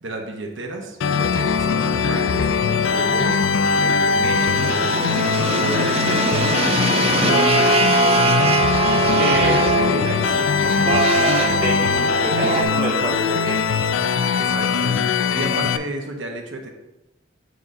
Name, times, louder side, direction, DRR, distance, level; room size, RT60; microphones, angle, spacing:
voice 1, 0.0-3.4 3.7-5.2 5.6-8.5 14.4-16.7, right 2 dB, 85° right, 3 dB, 1.0 m, -32 dB
sound 1, 1.0-15.8, left 5 dB, 85° left, 0.3 m, -21 dB
sound 2, 4.4-12.6, right 3 dB, 30° right, 0.4 m, -22 dB
voice 2, 9.2-13.6, right 2 dB, 50° right, -4 dB, 1.6 m, -28 dB
8.0 x 5.0 x 2.6 m, 0.97 s
head